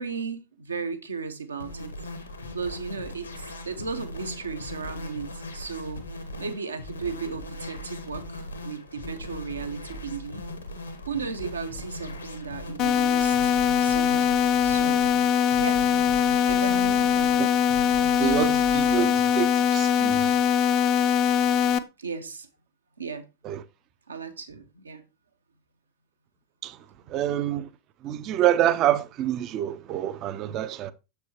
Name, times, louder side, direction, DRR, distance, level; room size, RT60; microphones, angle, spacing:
voice 1, 0.0-1.9 2.5-6.1 6.4-10.4 11.1-14.2 14.6-15.1 15.6-15.8 16.5-17.4 21.6-21.7 22.0-22.5 23.0-23.3 24.1-25.0, right 5 dB, 75° right, 0.9 m, -35 dB
sound 1, 1.6-19.1, left 1 dB, 80° left, 1.2 m, -39 dB
sound 2, 12.8-21.8, left 8 dB, 35° left, 0.5 m, -22 dB
voice 2, 18.1-20.4 23.4-23.6 26.6-26.8 27.1-27.7 28.0-30.9, right 12 dB, 35° right, 0.5 m, -27 dB
6.9 x 6.6 x 3.0 m
figure-of-eight pair, 90°, 0 cm